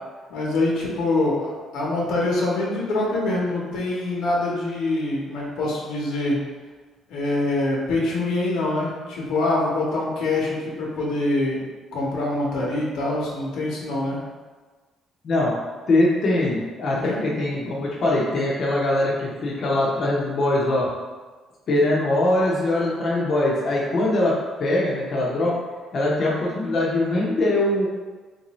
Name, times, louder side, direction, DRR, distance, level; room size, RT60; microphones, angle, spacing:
voice 1, 0.3-6.4 7.1-11.6 11.9-14.2 17.0-17.2, left 2 dB, 85° left, -4 dB, 1.0 m, -24 dB
voice 2, 15.9-20.9 21.7-25.6 25.9-27.9, left 1 dB, 40° left, -5 dB, 0.6 m, -22 dB
3.6 x 2.6 x 3.0 m, 1.4 s
cardioid pair, 165°, 0 cm